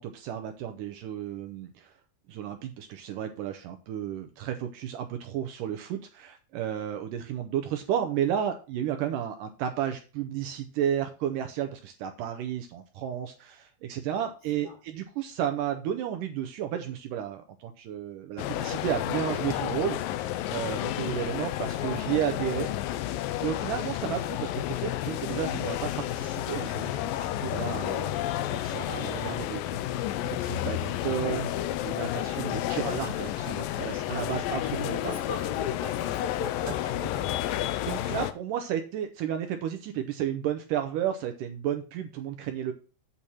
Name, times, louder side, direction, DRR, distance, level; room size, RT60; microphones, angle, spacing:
voice 1, 0.0-1.9 2.3-20.0 20.5-22.7 23.4-28.2 28.5-35.2 37.9-42.7, right 10 dB, 80° right, 7 dB, 2.0 m, -32 dB
sound 1, 18.4-38.3, left 13 dB, 80° left, 2.2 m, -31 dB
voice 2, 34.8-37.4, left 5 dB, 55° left, -2 dB, 4.0 m, -38 dB
8.6 x 4.2 x 6.1 m, 0.35 s
omnidirectional pair, 4.2 m